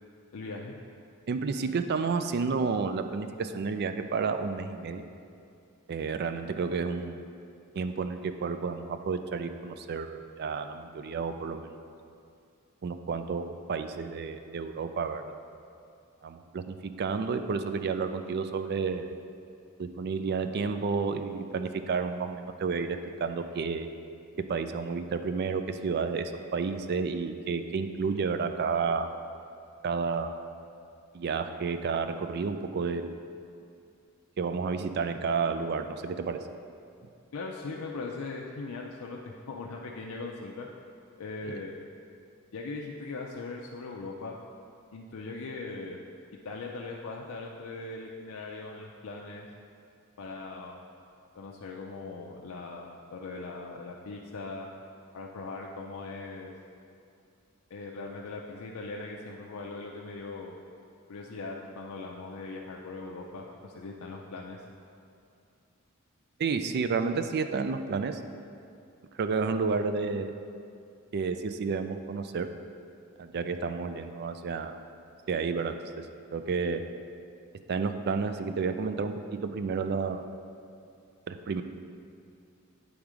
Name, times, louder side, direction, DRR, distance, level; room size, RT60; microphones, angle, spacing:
voice 1, 0.3-0.8 37.3-40.7 41.2-41.7 42.5-44.4 44.9-46.0 46.4-49.5 50.2-50.8 51.4-54.7 55.1-56.5 57.7-60.5 61.1-64.6, left 3 dB, 80° left, -1 dB, 0.5 m, -40 dB
voice 2, 1.3-5.0 5.9-7.2 7.7-11.8 12.8-15.4 16.2-19.2 19.8-23.9 24.5-29.1 29.8-30.4 31.1-33.2 34.4-36.4 41.5-41.6 66.4-68.2 69.2-70.3 71.1-72.5 73.2-74.8 75.3-76.1 76.3-76.8 77.7-80.3 81.3-81.6, right 5 dB, 50° right, 9 dB, 0.4 m, -31 dB
8.8 x 3.6 x 4.9 m, 2.5 s
head